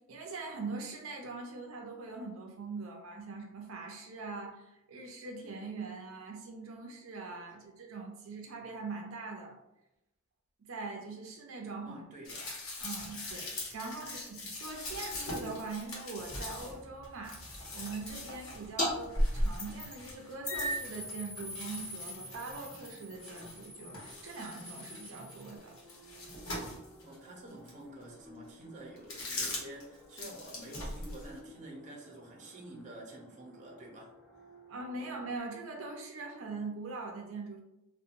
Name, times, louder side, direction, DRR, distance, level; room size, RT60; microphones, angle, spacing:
voice 1, 0.1-9.6 10.7-12.0 12.4-12.5 12.8-25.8 34.7-37.6, right 3 dB, 80° right, 1 dB, 0.5 m, -42 dB
voice 2, 11.9-12.5 14.0-14.1 27.0-34.1, right 1 dB, 40° right, -1 dB, 0.6 m, -49 dB
sound 1, 12.2-23.7 23.9-27.2 27.7-27.8 29.0-29.8 30.1-31.4, left 2 dB, 90° left, 0.9 m, -43 dB
sound 2, 16.1-35.4, equal, ahead, 0.6 m, -57 dB
sound 3, 18.8-18.9 19.2-20.1 20.4-25.5, equal, 40° left, 1.2 m, -36 dB
2.7 x 2.2 x 2.5 m, 0.90 s
head